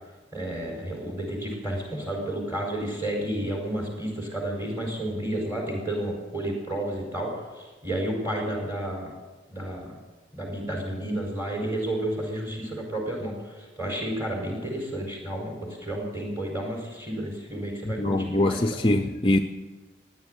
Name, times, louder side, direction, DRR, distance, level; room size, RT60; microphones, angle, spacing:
voice 1, 0.3-9.1 9.5-9.9 10.3-18.8, right 1 dB, 15° right, -1 dB, 4.7 m, -31 dB
voice 2, 17.8-19.4, left 1 dB, 30° left, 7 dB, 0.5 m, -23 dB
16.0 x 10.5 x 8.0 m, 1.3 s
head